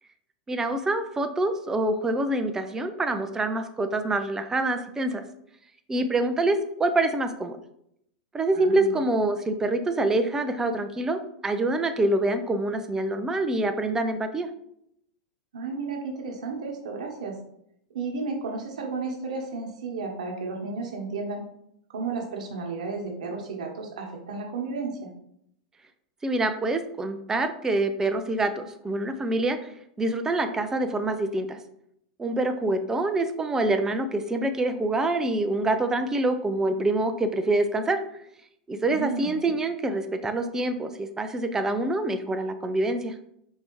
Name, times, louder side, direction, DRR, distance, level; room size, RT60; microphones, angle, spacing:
voice 1, 0.5-5.2 5.9-7.6 8.3-14.5 26.2-29.6 30.0-31.6 32.2-38.0 38.7-43.1, right 2 dB, 15° right, 8 dB, 0.4 m, -26 dB
voice 2, 8.5-8.9 15.5-17.4 17.9-21.4 21.9-25.1 38.9-39.5, right 4 dB, 75° right, 1 dB, 1.0 m, -33 dB
4.6 x 2.7 x 3.0 m, 0.74 s
hypercardioid pair, 115°, 4 cm